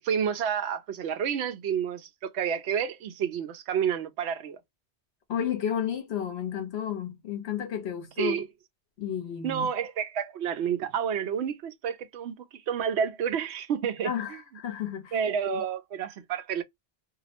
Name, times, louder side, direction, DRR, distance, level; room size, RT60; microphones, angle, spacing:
voice 1, 0.0-4.6 8.2-8.5 9.4-14.1 15.1-16.6, right 8 dB, 85° right, 0.9 m, -29 dB
voice 2, 5.3-8.4 9.0-9.7 14.0-15.2 15.5-15.6, left 9 dB, 75° left, 1.1 m, -32 dB
2.7 x 2.0 x 2.7 m
omnidirectional pair, 1.1 m